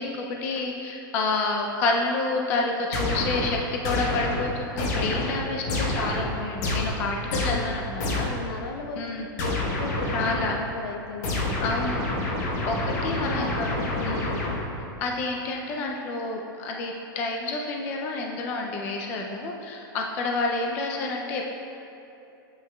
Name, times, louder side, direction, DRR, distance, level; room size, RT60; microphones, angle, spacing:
voice 1, 0.0-8.3 9.0-9.3 10.1-10.6 11.6-12.1 12.6-13.7 14.0-14.4 15.0-21.4, left 3 dB, 15° left, 1 dB, 0.3 m, -29 dB
sound 1, 2.9-8.5 9.4-10.7 11.2-14.9, left 2 dB, 45° left, 0.9 m, -28 dB
voice 2, 8.0-11.7 12.1-12.4 13.1-14.3, left 3 dB, 75° left, 3 dB, 0.9 m, -37 dB
9.8 x 7.5 x 2.2 m, 2.9 s
supercardioid pair, 180°, 12 cm